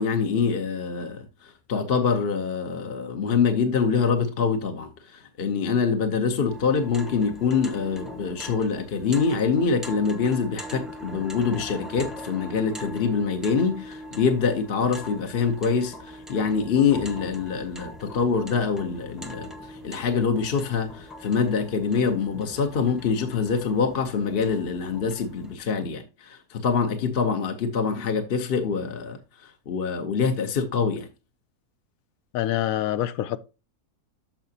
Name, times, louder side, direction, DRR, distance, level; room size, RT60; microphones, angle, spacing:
voice 1, 0.0-31.1, left 5 dB, 45° left, 0.9 m, -25 dB
sound 1, 6.5-25.5, left 1 dB, ahead, 0.8 m, -41 dB
voice 2, 32.3-33.4, left 12 dB, 70° left, 1.0 m, -25 dB
13.0 x 4.9 x 2.7 m
omnidirectional pair, 1.6 m